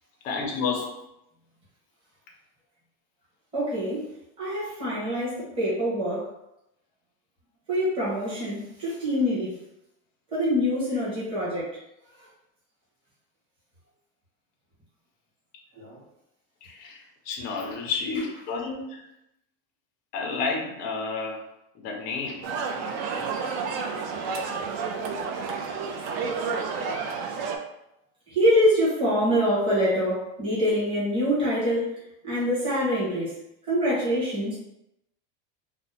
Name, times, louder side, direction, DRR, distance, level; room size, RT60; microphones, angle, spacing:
voice 1, 0.2-1.0 16.6-19.1 20.1-21.4 21.7-22.5, left 4 dB, 25° left, 0 dB, 0.4 m, -31 dB
voice 2, 3.5-4.0 4.4-6.3 7.7-9.6 10.3-11.7 15.8-16.0 24.1-24.2 28.3-32.0 32.2-33.3 33.7-34.6, equal, 15° right, -9 dB, 0.9 m, -25 dB
sound 1, 22.4-27.6, right 5 dB, 55° right, 0.4 m, -30 dB
2.7 x 2.0 x 3.9 m, 0.84 s
cardioid pair, 165°, 40 cm